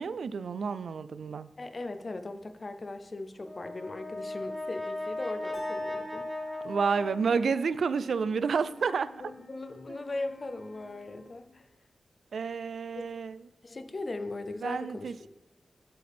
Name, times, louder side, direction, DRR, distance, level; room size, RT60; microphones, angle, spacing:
voice 1, 0.0-1.5 6.6-9.1 12.3-13.4 14.6-15.3, right 5 dB, 70° right, 15 dB, 0.3 m, -30 dB
voice 2, 1.6-6.3 9.2-11.7 13.6-15.3, left 2 dB, 30° left, 9 dB, 0.6 m, -39 dB
Brass instrument, 3.4-7.8, left 2 dB, 30° right, 1.1 m, -37 dB
sound 1, 5.5-7.7, equal, 5° right, 2.5 m, -46 dB
Wind instrument woodwind instrument, 6.8-11.6, left 3 dB, 85° left, 1.5 m, -54 dB
7.8 x 7.7 x 3.5 m, 1.0 s
wide cardioid pair, 150°, 0 cm